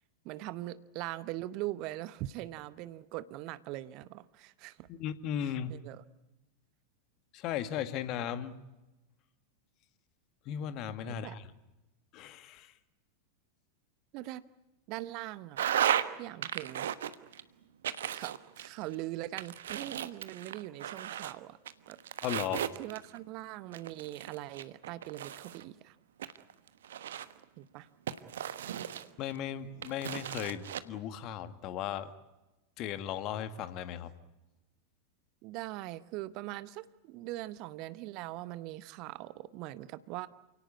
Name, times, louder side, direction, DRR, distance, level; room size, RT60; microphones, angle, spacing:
voice 1, 0.2-4.9 5.4-6.0 11.1-11.4 14.1-14.5 14.9-15.6 16.2-16.9 18.1-21.6 21.9-22.0 22.8-26.0 27.6-27.9 35.4-40.3, right 16 dB, 40° right, 17 dB, 0.9 m, -41 dB
voice 2, 4.9-5.8 7.3-8.5 10.5-11.5 12.1-12.7 22.2-22.6 29.2-32.1 32.8-34.1, left 9 dB, 40° left, 11 dB, 1.9 m, -36 dB
sound 1, 15.6-16.1 16.4-17.4 17.8-18.9 19.4-21.3 21.7-23.2 23.7-25.6 26.2-27.4 28.1-29.4 29.8-30.8, right 10 dB, 60° right, 1.2 m, -35 dB
28.5 x 18.0 x 9.7 m, 1.0 s
figure-of-eight pair, 90°, 0 cm